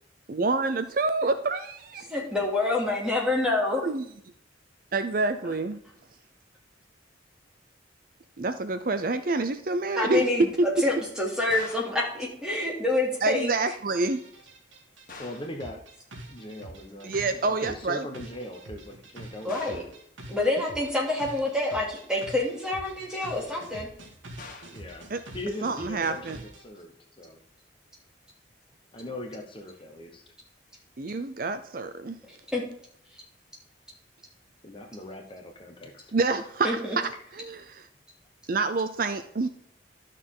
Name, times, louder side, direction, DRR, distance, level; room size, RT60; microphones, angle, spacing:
voice 1, 0.3-2.0 3.8-4.0 4.9-5.8 8.4-10.3 13.2-14.2 17.0-18.1 25.1-25.2 25.6-26.4 31.0-32.2 36.1-37.9 38.5-39.5, right 3 dB, 45° right, 10 dB, 0.5 m, -27 dB
voice 2, 2.1-3.8 10.0-10.5 10.8-13.5 19.4-19.8 20.3-23.9 32.2-32.6 36.6-37.0, left 2 dB, 5° right, -2 dB, 2.6 m, -27 dB
sound 1, 11.5-12.0 15.1-15.6 19.5-20.0 24.4-24.8, left 4 dB, 45° left, 1.5 m, -44 dB
sound 2, 14.1-26.6, right 1 dB, 85° right, 1.9 m, -46 dB
voice 3, 15.2-15.8 16.3-19.7 24.7-27.4 28.9-30.2 34.6-36.1, left 1 dB, 25° left, 2 dB, 1.1 m, -40 dB
12.0 x 6.6 x 3.8 m, 0.67 s
head